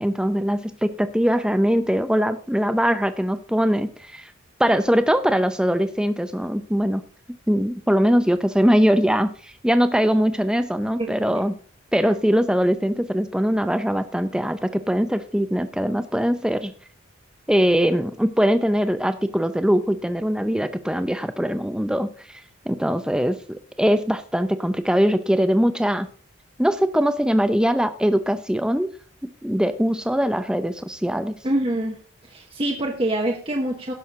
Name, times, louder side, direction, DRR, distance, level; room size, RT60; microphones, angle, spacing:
voice 1, 0.0-4.3 4.6-7.0 7.5-11.6 11.9-16.7 17.5-22.4 22.7-26.1 26.6-28.9 29.2-31.4, equal, 5° right, 10 dB, 0.6 m, -21 dB
voice 2, 31.4-32.0 32.2-33.9, right 1 dB, 25° right, 1 dB, 1.0 m, -25 dB
17.0 x 6.3 x 3.7 m, 0.43 s
head